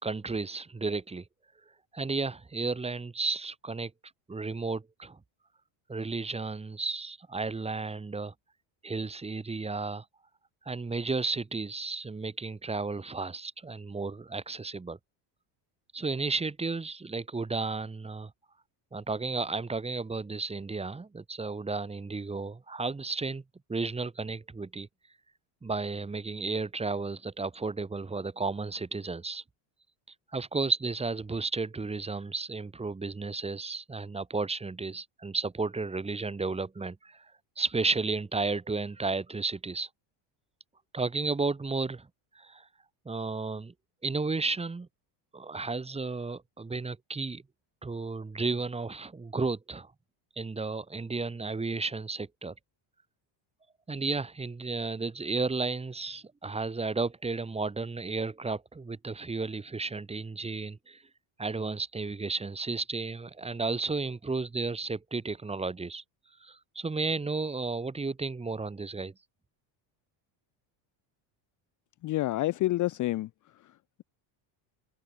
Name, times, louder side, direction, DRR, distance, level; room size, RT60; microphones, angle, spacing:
voice 1, 0.0-1.2 1.9-3.9 4.3-5.2 5.9-8.3 8.8-10.0 10.7-15.0 15.9-18.3 18.9-23.4 23.7-24.9 25.6-29.4 30.3-37.3 37.6-39.9 40.9-42.1 42.4-42.6 43.1-43.7 44.0-44.9 45.3-47.4 47.8-49.9 50.4-52.5 53.9-61.0 61.4-66.0 66.4-69.1, right 3 dB, 10° right, 2.0 m, -33 dB
voice 2, 72.0-73.3, left 16 dB, 40° left, 0.6 m, -28 dB
cardioid pair, 145°, 49 cm